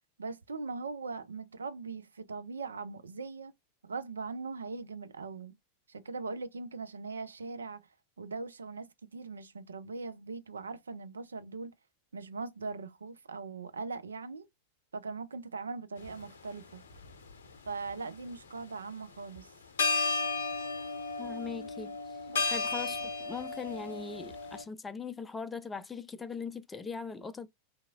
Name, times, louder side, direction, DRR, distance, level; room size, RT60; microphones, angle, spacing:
voice 1, 0.2-3.5 3.8-5.6 5.9-7.9 8.2-11.7 12.1-14.5 14.9-16.8 17.7-19.5 22.3-22.5, right 4 dB, 75° right, 0.4 m, -40 dB
sound 1, 16.0-16.2 16.9-17.9 19.4-19.5 19.8-24.6, left 4 dB, 65° left, 0.7 m, -33 dB
voice 2, 21.2-21.9 22.5-27.5, left 5 dB, 15° left, 0.4 m, -40 dB
3.5 x 2.9 x 2.2 m
figure-of-eight pair, 90°, 0 cm